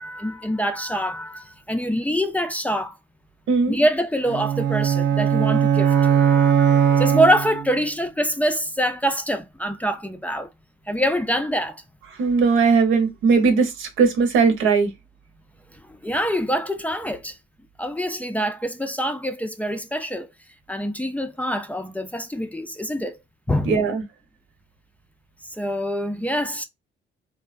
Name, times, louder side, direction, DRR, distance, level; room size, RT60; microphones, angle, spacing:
voice 1, 0.0-3.0 3.7-10.5 10.9-11.8 15.9-17.4 17.8-20.3 20.7-23.2 23.5-23.8 25.5-26.6, equal, 5° left, 0.4 m, -25 dB
voice 2, 3.5-3.8 12.1-14.9 23.6-24.0, right 5 dB, 85° right, 0.9 m, -19 dB
sound 1, 4.3-7.8, right 8 dB, 65° right, 0.5 m, -19 dB
3.5 x 2.1 x 2.4 m
cardioid pair, 90°, 20 cm